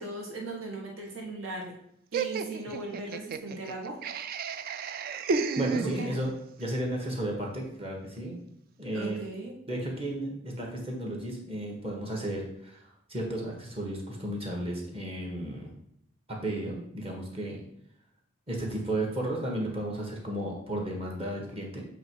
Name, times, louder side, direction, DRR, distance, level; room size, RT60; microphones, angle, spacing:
voice 1, 0.0-1.8 2.1-4.0 5.8-6.2 8.9-9.6, right 2 dB, 75° right, 0 dB, 1.7 m, -38 dB
Laughter, 2.1-6.4, right 4 dB, 45° right, 0.3 m, -33 dB
voice 2, 5.6-6.3 6.6-8.4 8.8-9.3 9.7-12.8 13.1-15.7 16.3-17.6 18.5-21.8, right 1 dB, 30° right, -1 dB, 1.5 m, -33 dB
7.5 x 3.1 x 4.6 m, 0.74 s
head